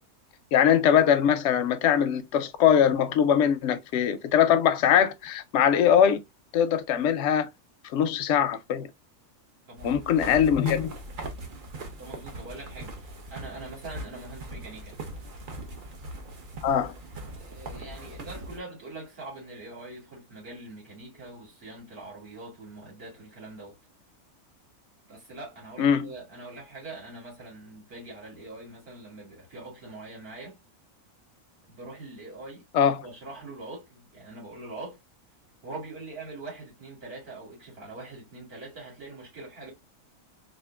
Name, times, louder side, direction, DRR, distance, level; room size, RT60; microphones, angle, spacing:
voice 1, 0.5-6.2 6.5-7.5 7.9-8.9 9.8-10.9 16.6-16.9 25.8-26.1 32.7-33.0, left 8 dB, 65° left, 0.8 m, -22 dB
voice 2, 9.7-10.1 12.0-15.0 17.4-23.7 25.1-30.6 31.7-32.7 33.0-35.0 35.6-39.7, right 2 dB, 85° right, 2.9 m, -43 dB
sound 1, 9.8-18.6, right 1 dB, 45° right, 0.7 m, -40 dB
4.3 x 2.6 x 2.3 m
omnidirectional pair, 1.5 m